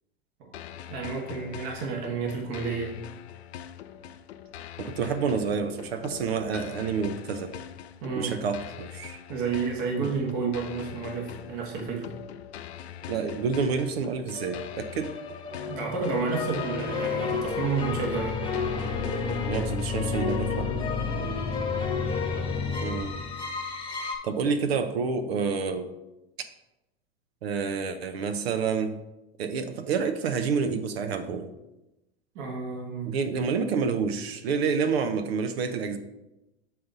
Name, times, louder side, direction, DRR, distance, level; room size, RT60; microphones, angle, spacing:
sound 1, 0.5-20.5, left 10 dB, 85° left, 0.5 m, -43 dB
voice 1, 0.9-3.0 8.0-8.3 9.3-12.1 15.7-18.4 32.3-33.1, right 5 dB, 50° right, 1 dB, 1.4 m, -31 dB
voice 2, 4.8-7.6 8.2-9.2 10.0-10.1 13.1-15.1 19.5-20.7 22.8-23.1 24.0-25.9 27.4-29.0 29.4-31.5 33.1-36.0, right 5 dB, 75° right, 9 dB, 0.7 m, -28 dB
sound 2, 14.3-24.2, left 5 dB, 15° left, 1.1 m, -30 dB
7.6 x 4.0 x 3.9 m, 0.96 s
hypercardioid pair, 95°, 31 cm